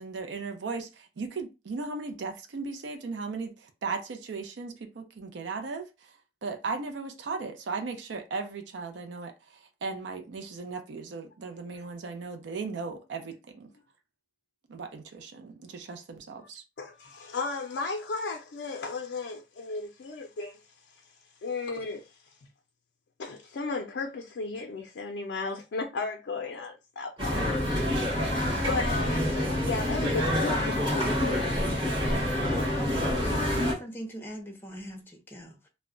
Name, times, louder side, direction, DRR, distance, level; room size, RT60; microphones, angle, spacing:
voice 1, 0.0-13.7 14.7-16.6, right 4 dB, 75° right, 0.4 m, -37 dB
voice 2, 16.8-21.1 21.4-22.4 23.2-27.4 28.4-31.6 33.0-33.3, left 3 dB, 75° left, 0.4 m, -35 dB
sound 1, 27.2-33.7, left 1 dB, 25° right, 1.1 m, -27 dB
voice 3, 32.8-35.7, equal, 10° left, 0.6 m, -41 dB
2.2 x 2.1 x 3.6 m
head